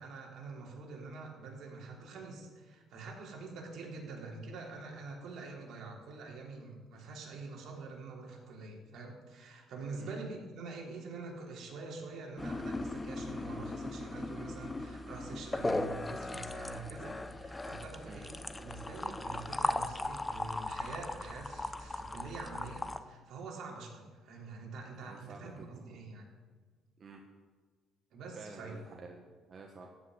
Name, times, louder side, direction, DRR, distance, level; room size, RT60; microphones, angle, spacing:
voice 1, 0.0-26.3 28.1-28.8, right 3 dB, 65° right, 0 dB, 3.4 m, -46 dB
sound 1, 12.4-23.0, left 2 dB, 15° left, 0.6 m, -38 dB
voice 2, 25.0-26.0 27.0-27.2 28.4-29.9, right 4 dB, 35° right, 1 dB, 1.3 m, -50 dB
14.5 x 6.1 x 9.6 m, 1.4 s
cardioid pair, 140°, 0 cm